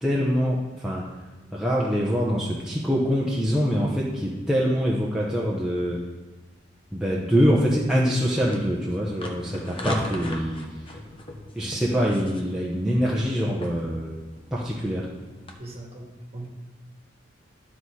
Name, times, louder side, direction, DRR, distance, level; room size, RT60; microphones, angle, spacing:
voice 1, 0.0-1.0 1.5-6.0 6.9-10.6 11.5-14.1 14.5-15.1, equal, 5° right, -5 dB, 0.8 m, -24 dB
sound 1, 7.6-15.5, left 1 dB, 30° left, 0.9 m, -39 dB
voice 2, 15.6-16.5, right 2 dB, 30° right, -1 dB, 1.8 m, -39 dB
12.0 x 4.2 x 4.7 m, 1.2 s
head